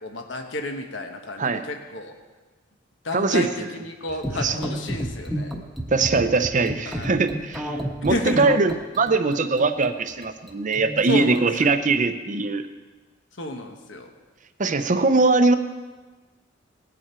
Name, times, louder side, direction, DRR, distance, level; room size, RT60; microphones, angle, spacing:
voice 1, 0.0-2.1 3.0-5.6 6.9-7.2 8.0-8.5 11.1-11.7 13.4-14.1, left 2 dB, 70° left, 4 dB, 1.2 m, -31 dB
voice 2, 3.1-3.7 4.4-4.6 5.9-12.7 14.6-15.6, right 3 dB, 40° right, 9 dB, 0.7 m, -21 dB
sound 1, 4.1-11.7, equal, ahead, 1.2 m, -31 dB
18.5 x 7.5 x 4.4 m, 1.3 s
head